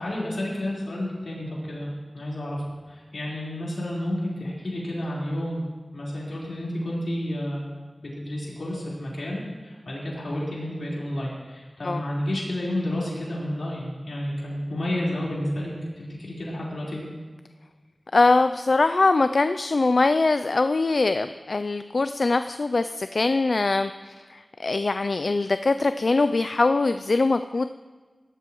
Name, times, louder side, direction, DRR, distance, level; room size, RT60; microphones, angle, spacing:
voice 1, 0.0-2.6 2.9-5.6 5.9-7.7 8.0-17.0, left 1 dB, 90° left, -6 dB, 4.1 m, -31 dB
voice 2, 18.1-27.6, left 3 dB, 70° left, 10 dB, 0.3 m, -22 dB
17.5 x 12.5 x 3.0 m, 1.4 s
wide cardioid pair, 55°, 0 cm